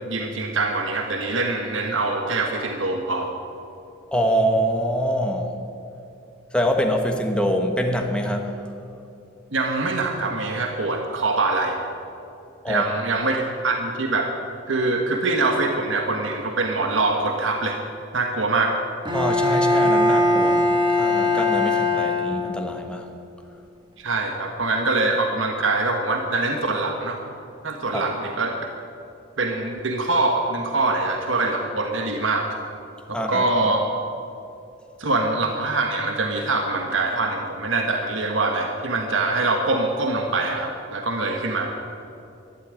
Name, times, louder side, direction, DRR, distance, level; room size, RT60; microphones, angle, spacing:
voice 1, 0.0-3.3 9.5-11.8 12.7-14.3 14.7-17.8 18.1-18.7 24.0-27.2 27.6-28.6 29.4-32.5 33.3-33.8 35.0-41.7, right 3 dB, 85° right, 3 dB, 1.4 m, -24 dB
voice 2, 4.1-5.5 6.5-8.5 12.6-12.8 19.1-23.1 27.9-28.0 33.1-33.4, equal, 5° left, 2 dB, 1.2 m, -24 dB
Bowed string instrument, 19.1-22.8, left 2 dB, 25° right, 1.8 m, -20 dB
13.0 x 11.5 x 9.7 m, 2.7 s
head